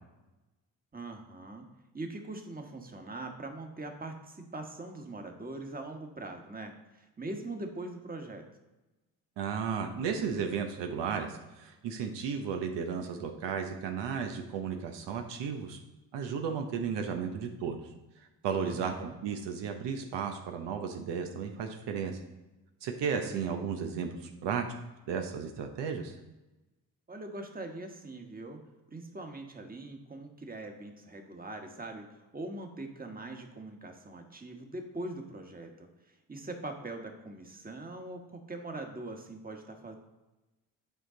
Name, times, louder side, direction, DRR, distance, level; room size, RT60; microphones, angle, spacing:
voice 1, 0.9-1.7 1.9-8.4 18.6-19.1 23.2-23.6 27.1-28.6 28.9-40.0, right 2 dB, 20° right, 4 dB, 1.4 m, -42 dB
voice 2, 9.4-15.8 16.1-17.8 18.2-22.2 22.8-24.6 25.1-26.2, right 6 dB, 70° right, 4 dB, 0.9 m, -34 dB
8.1 x 4.6 x 3.8 m, 1.1 s
supercardioid pair, 55°, 44 cm